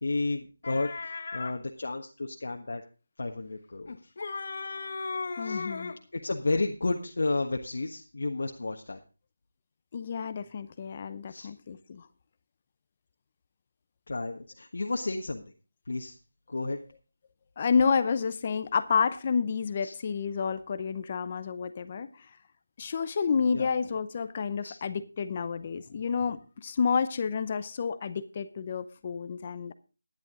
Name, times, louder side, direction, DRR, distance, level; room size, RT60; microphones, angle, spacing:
voice 1, 0.0-2.8 3.2-4.0 5.4-5.6 6.1-9.0 11.3-11.5 14.1-15.4 15.9-16.1 16.5-16.8 19.8-19.9 23.5-23.7 24.6-24.8, left 3 dB, 60° left, 2 dB, 1.4 m, -32 dB
sound 1, 0.6-1.6 3.9-6.0, left 4 dB, 45° left, 1.1 m, -36 dB
voice 2, 5.4-5.9 9.9-12.0 17.6-22.1 22.8-29.7, left 6 dB, 30° left, 12 dB, 0.7 m, -29 dB
13.0 x 10.5 x 3.7 m, 0.34 s
figure-of-eight pair, 170°, 0 cm